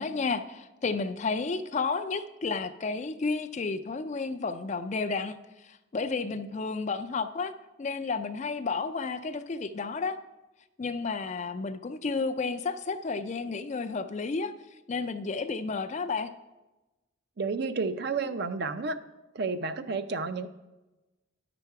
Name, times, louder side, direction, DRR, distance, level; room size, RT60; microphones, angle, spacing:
voice 1, 0.0-7.5 7.8-10.2 10.8-14.5 14.9-16.3, left 4 dB, 35° left, 10 dB, 0.4 m, -32 dB
voice 2, 17.4-19.0 19.3-20.5, right 4 dB, 50° right, 10 dB, 0.5 m, -31 dB
10.5 x 6.9 x 4.6 m, 1.1 s
head